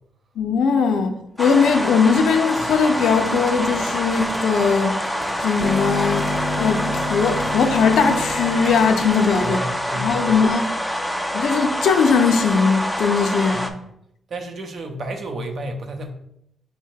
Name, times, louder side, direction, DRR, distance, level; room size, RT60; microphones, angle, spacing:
voice 1, 0.4-5.0 5.4-9.6 9.9-10.6 11.3-13.7, left 5 dB, 90° left, 0.5 m, -19 dB
sound 1, 1.4-13.7, equal, ahead, 0.4 m, -26 dB
sound 2, 1.4-9.6, right 1 dB, 20° right, 0.8 m, -40 dB
sound 3, 5.6-10.0, left 2 dB, 40° left, 0.6 m, -30 dB
voice 2, 9.4-10.4 13.5-13.8 14.3-16.1, right 1 dB, 55° right, 0.7 m, -31 dB
5.4 x 2.1 x 4.5 m
cardioid pair, 115°, 0 cm